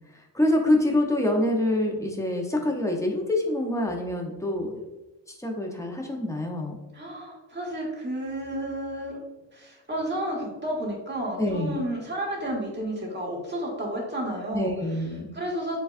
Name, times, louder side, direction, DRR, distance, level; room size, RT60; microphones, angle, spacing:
voice 1, 0.1-4.9 5.3-6.8 11.4-11.8 14.5-15.3, left 1 dB, 5° left, 1 dB, 0.6 m, -26 dB
voice 2, 6.9-9.2 9.5-14.7 15.3-15.8, right 1 dB, 25° right, -3 dB, 1.5 m, -31 dB
6.7 x 2.3 x 2.4 m, 1.1 s
cardioid pair, 100°, 46 cm